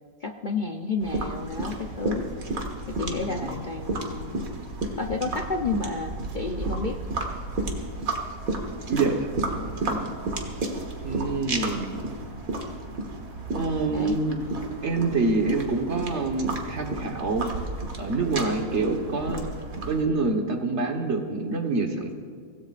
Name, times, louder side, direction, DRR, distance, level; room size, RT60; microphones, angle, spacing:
voice 1, 0.2-2.3 2.9-4.5 5.0-7.0 13.9-14.2, left 4 dB, 45° left, 3 dB, 0.7 m, -31 dB
sound 1, 1.0-20.0, right 2 dB, 70° right, 2.0 m, -32 dB
voice 2, 3.1-3.6 8.9-9.3 9.6-10.2 11.0-12.1 13.5-14.4 14.8-17.5 18.0-19.4 19.9-22.1, right 3 dB, 50° right, 3 dB, 1.6 m, -27 dB
24.0 x 17.0 x 2.5 m, 2.2 s
omnidirectional pair, 1.5 m